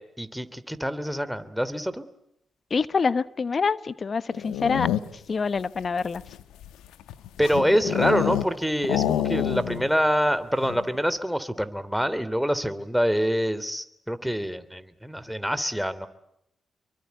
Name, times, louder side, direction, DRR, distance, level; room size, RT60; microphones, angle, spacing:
voice 1, 0.0-2.0 7.4-16.1, equal, ahead, 13 dB, 2.9 m, -26 dB
voice 2, 2.7-4.9 5.3-6.2, left 5 dB, 50° left, 16 dB, 1.1 m, -26 dB
sound 1, 4.3-5.3 6.0-8.6 8.8-9.9 10.2-10.3 10.6-11.0, left 11 dB, 85° left, 1.4 m, -27 dB
27.5 x 23.5 x 8.1 m, 0.79 s
supercardioid pair, 45°, 0 cm